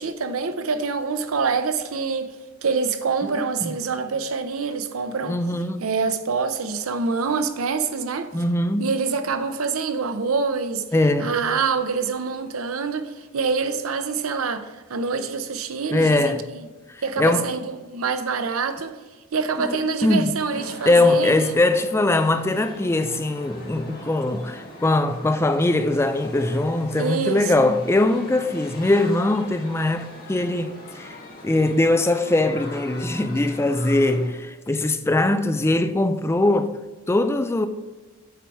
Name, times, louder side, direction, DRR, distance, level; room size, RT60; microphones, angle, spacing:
voice 1, 0.0-2.3 2.6-5.4 5.8-8.3 8.8-10.8 11.2-16.6 17.0-18.9 19.3-21.6 26.9-27.7, right 5 dB, 90° right, 0.7 m, -26 dB
voice 2, 5.3-5.8 8.3-9.0 10.9-11.3 15.9-16.4 16.9-17.5 19.6-31.2 31.4-36.8 37.1-37.7, left 2 dB, 10° left, 0.3 m, -21 dB
sound 1, 20.5-34.3, left 2 dB, 45° left, 1.6 m, -41 dB
8.1 x 4.7 x 5.8 m
head